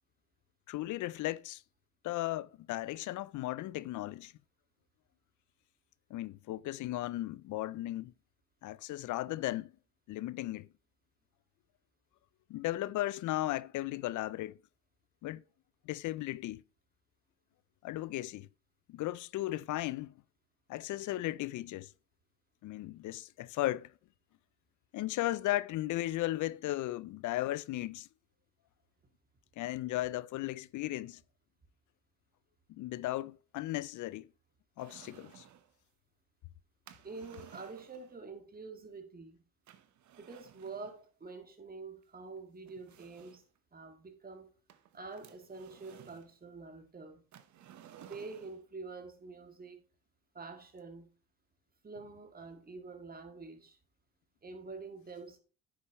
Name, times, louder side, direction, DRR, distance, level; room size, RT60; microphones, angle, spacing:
voice 1, 0.7-1.6 2.0-4.3 6.1-8.1 8.6-9.7 10.1-10.7 12.5-14.6 15.2-15.4 15.9-16.6 17.8-18.5 18.9-20.1 20.7-21.9 22.6-23.9 24.9-28.1 29.6-31.2 32.7-34.3 34.8-35.4, left 16 dB, 75° left, 0.5 m, -36 dB
sound 1, 34.8-35.7 36.9-38.2 39.7-41.0 42.0-42.1 42.7-43.6 44.7-46.3 47.3-48.7, right 10 dB, 70° right, 1.0 m, -56 dB
voice 2, 37.0-39.4 40.2-43.4 43.7-44.5 44.9-47.2 48.0-49.8 50.3-51.1 51.8-53.8 54.4-55.4, right 4 dB, 30° right, 1.9 m, -47 dB
9.5 x 6.5 x 3.0 m
cardioid pair, 90°, 30 cm